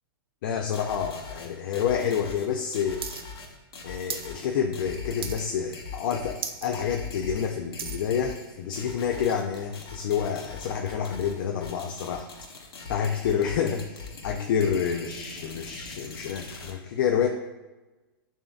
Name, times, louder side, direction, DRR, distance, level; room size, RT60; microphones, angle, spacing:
voice 1, 0.4-3.1 3.8-12.3 12.9-17.3, left 7 dB, 60° left, 4 dB, 0.4 m, -28 dB
sound 1, 0.7-16.7, left 4 dB, 85° left, 0.9 m, -42 dB
sound 2, 3.0-3.2 3.5-4.3 4.7-4.9 5.2-5.7 6.0-6.1 6.3-6.7 7.1-8.1 8.7-8.8, right 7 dB, 85° right, 0.5 m, -36 dB
6.8 x 2.7 x 2.3 m, 1.1 s
hypercardioid pair, 145°, 12 cm